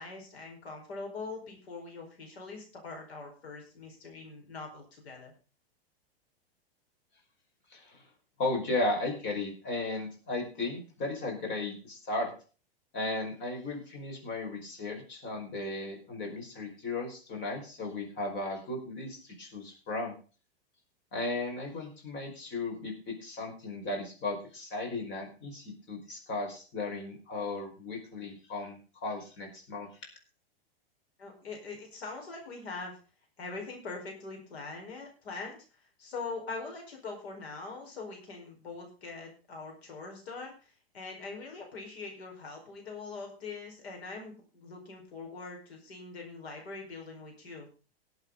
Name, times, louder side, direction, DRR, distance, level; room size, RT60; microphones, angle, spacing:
voice 1, 0.0-5.3 31.2-33.0 33.4-35.6 36.0-47.7, left 4 dB, 80° left, 1 dB, 4.8 m, -42 dB
voice 2, 7.7-8.0 8.4-12.3 12.9-20.1 21.1-29.9, left 2 dB, 35° left, 2 dB, 5.2 m, -35 dB
18.5 x 8.0 x 3.9 m, 0.36 s
hypercardioid pair, 120°, 31 cm